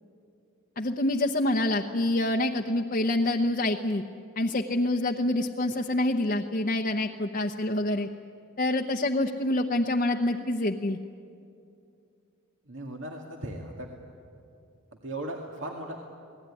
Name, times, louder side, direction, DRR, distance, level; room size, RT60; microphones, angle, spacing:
voice 1, 0.8-4.0 4.4-8.1 8.6-11.0, left 1 dB, 40° left, 2 dB, 0.9 m, -26 dB
voice 2, 12.7-13.9 15.0-16.0, right 1 dB, 65° right, 0 dB, 2.2 m, -37 dB
29.5 x 19.5 x 9.9 m, 2.6 s
head